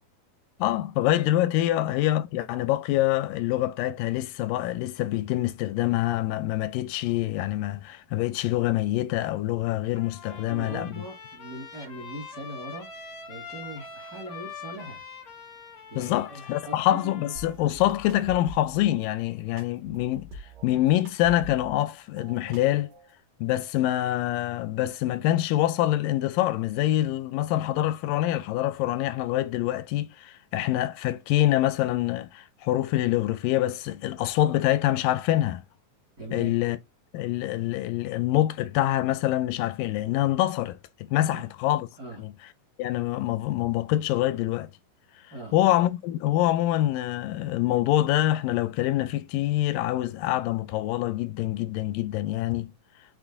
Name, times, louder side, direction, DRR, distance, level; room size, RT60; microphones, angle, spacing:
voice 1, 0.6-10.9 16.0-20.3 20.6-22.9 23.4-35.6 36.3-36.8 37.1-40.8 41.1-41.9 42.2-42.3 42.8-44.7 45.5-52.7, left 14 dB, 85° left, 2.2 m, -25 dB
Trumpet, 9.9-17.5, left 5 dB, 60° left, 0.8 m, -44 dB
voice 2, 10.3-12.9 13.3-15.0 15.9-17.3 27.7-27.8 36.2-36.6 41.3-41.5 42.0-42.2 45.3-45.6, right 2 dB, 60° right, 0.9 m, -40 dB
sound 1, 17.4-18.9 19.6-21.9 22.2-23.1, right 2 dB, 80° right, 2.7 m, -44 dB
6.1 x 2.1 x 3.4 m
omnidirectional pair, 3.8 m